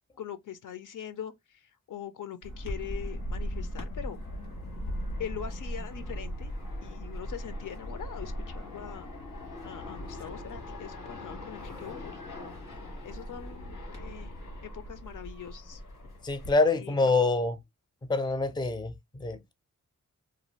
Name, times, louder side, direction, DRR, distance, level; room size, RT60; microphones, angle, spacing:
voice 1, 0.2-4.2 5.2-6.5 6.8-9.1 9.6-12.2 13.0-14.3 14.6-15.8 16.7-17.1, left 9 dB, 70° left, 0.5 m, -42 dB
sound 1, 2.4-16.5, equal, 90° left, 1.2 m, -39 dB
voice 2, 16.2-17.6 18.1-19.5, left 3 dB, 15° left, 0.5 m, -26 dB
2.5 x 2.3 x 3.0 m
cardioid pair, 55°, 32 cm